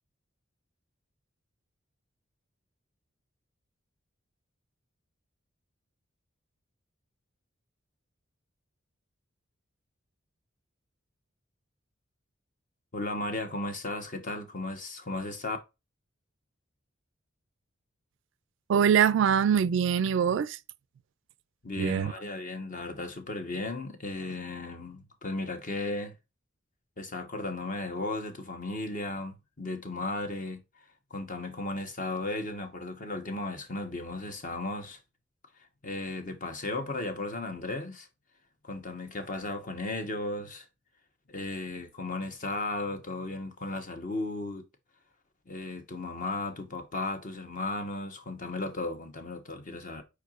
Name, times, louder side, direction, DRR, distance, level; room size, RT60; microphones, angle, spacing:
voice 1, 12.9-15.6 21.6-26.1 27.0-30.6 31.1-35.0 35.8-38.1 38.6-40.7 41.3-44.7 45.5-50.0, left 2 dB, 40° left, 1.0 m, -35 dB
voice 2, 18.7-20.6 21.8-22.1, right 8 dB, 65° right, 0.3 m, -23 dB
4.8 x 4.5 x 2.4 m
head